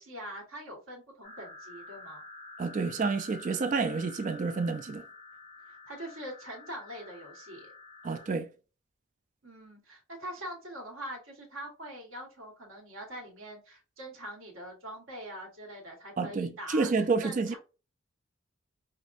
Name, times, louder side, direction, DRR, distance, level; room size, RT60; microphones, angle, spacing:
voice 1, 0.0-2.2 5.7-7.7 9.4-16.9 17.2-17.6, right 1 dB, 80° right, 1.4 m, -43 dB
sound 1, 1.2-8.3, left 3 dB, 35° left, 1.3 m, -49 dB
voice 2, 2.6-5.0 8.0-8.5 16.2-17.6, right 4 dB, 40° right, 0.3 m, -29 dB
5.0 x 2.1 x 2.5 m
head